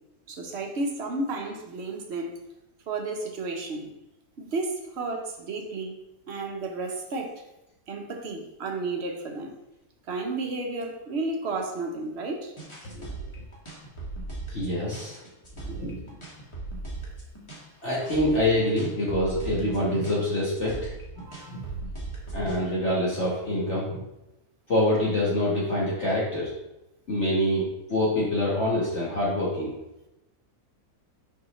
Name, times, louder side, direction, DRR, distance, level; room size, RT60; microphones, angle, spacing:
voice 1, 0.3-2.3 2.9-3.9 4.4-5.9 6.3-7.3 7.9-9.5 10.1-12.5 21.2-21.5, right 3 dB, 50° right, 3 dB, 1.1 m, -32 dB
sound 1, 12.6-22.6, right 3 dB, 20° left, 1.4 m, -38 dB
voice 2, 14.5-15.2 15.6-16.0 17.8-21.6 22.3-24.0 24.7-26.5 27.1-27.6 27.9-29.7, left 1 dB, 50° left, -7 dB, 1.7 m, -26 dB
6.0 x 5.6 x 3.2 m, 0.92 s
omnidirectional pair, 1.6 m